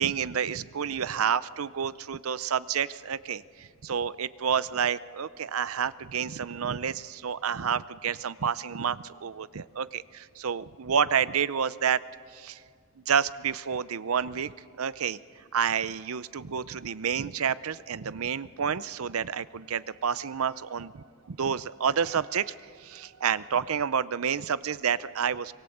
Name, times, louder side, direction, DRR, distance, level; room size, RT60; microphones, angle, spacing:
voice 1, 0.0-12.0 12.3-12.6 13.1-14.5 14.8-15.2 15.5-25.5, right 7 dB, 70° right, 17 dB, 0.6 m, -29 dB
24.5 x 22.0 x 7.9 m, 2.1 s
head